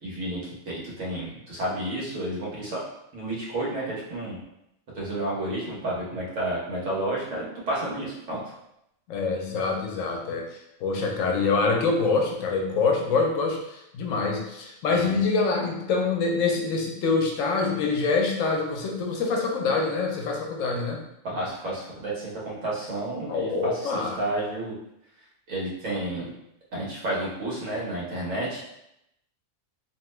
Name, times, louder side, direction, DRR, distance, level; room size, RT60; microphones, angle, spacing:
voice 1, 0.0-2.8 3.1-4.4 4.9-8.4 14.9-15.2 21.2-24.7 25.5-26.3 26.7-28.7, right 1 dB, 80° right, -5 dB, 1.3 m, -31 dB
voice 2, 9.1-21.0 23.3-24.2, left 4 dB, 85° left, 1 dB, 1.0 m, -25 dB
2.9 x 2.2 x 3.0 m, 0.82 s
omnidirectional pair, 1.3 m